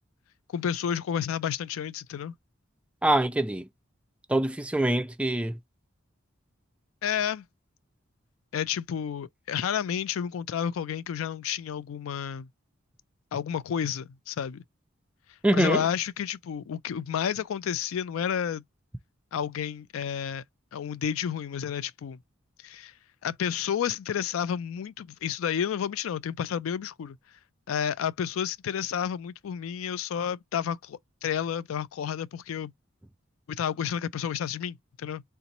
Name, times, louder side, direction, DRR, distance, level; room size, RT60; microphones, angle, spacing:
voice 1, 0.5-2.3 7.0-7.4 8.5-12.5 13.3-14.6 15.5-18.6 19.3-20.4 20.7-22.2 22.6-22.9 23.2-27.2 27.7-32.7 33.5-35.2, left 8 dB, 80° left, 0.3 m, -31 dB
voice 2, 3.0-3.7 4.3-5.6 15.4-15.8, right 1 dB, 5° right, 0.3 m, -24 dB
3.4 x 2.9 x 3.9 m
head